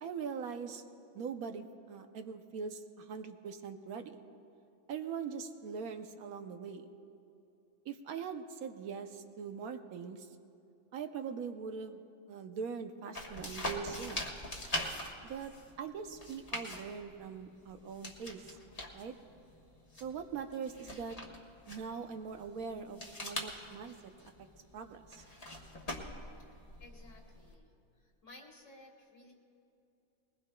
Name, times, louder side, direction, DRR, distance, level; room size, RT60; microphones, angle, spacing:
voice 1, 0.0-0.8 1.1-4.2 4.9-6.9 7.8-10.3 10.9-12.0 12.3-14.2 15.2-15.5 15.8-18.6 18.9-19.1 20.0-21.2 21.7-24.0 24.2-24.3 24.7-25.2, right 6 dB, 75° right, 7 dB, 1.1 m, -42 dB
sound 1, 13.1-27.5, left 1 dB, 25° left, 1.2 m, -44 dB
voice 2, 26.5-29.3, left 2 dB, 55° left, 0 dB, 2.1 m, -57 dB
21.5 x 19.5 x 2.2 m, 2.7 s
omnidirectional pair, 1.6 m